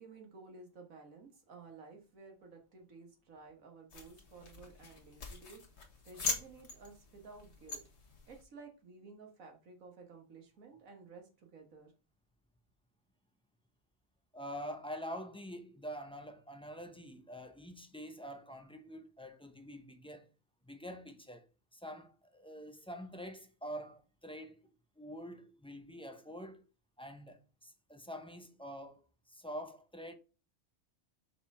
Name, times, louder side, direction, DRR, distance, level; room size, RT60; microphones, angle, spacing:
voice 1, 0.0-7.8 8.3-11.9, right 4 dB, 80° right, 1.9 m, -54 dB
sound 1, 3.9-8.4, left 4 dB, 55° left, 1.6 m, -42 dB
voice 2, 14.3-20.3 20.6-26.6 27.0-30.2, equal, 5° left, 0.5 m, -46 dB
5.4 x 4.8 x 4.9 m
omnidirectional pair, 1.4 m